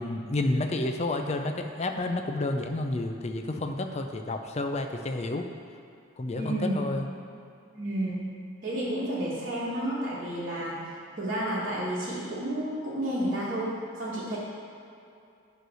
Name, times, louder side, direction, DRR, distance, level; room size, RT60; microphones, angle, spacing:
voice 1, 0.0-5.5 6.2-7.1, left 2 dB, 30° left, 5 dB, 0.5 m, -30 dB
voice 2, 6.4-6.9 7.7-8.3 8.6-10.9 11.2-14.4, right 1 dB, 45° right, -11 dB, 1.5 m, -31 dB
9.4 x 3.2 x 6.3 m, 2.6 s
head